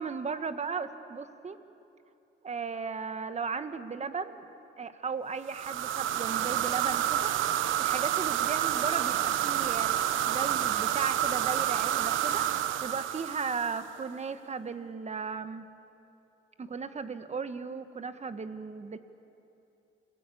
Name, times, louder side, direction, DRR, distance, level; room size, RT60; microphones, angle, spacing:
voice 1, 0.0-1.6 2.4-4.4 4.8-15.6 16.6-19.0, right 5 dB, 35° right, 10 dB, 1.5 m, -36 dB
sound 1, 5.5-14.0, right 11 dB, 85° right, 1.0 m, -29 dB
28.5 x 21.0 x 8.6 m, 2.8 s
cardioid pair, 90°, 20 cm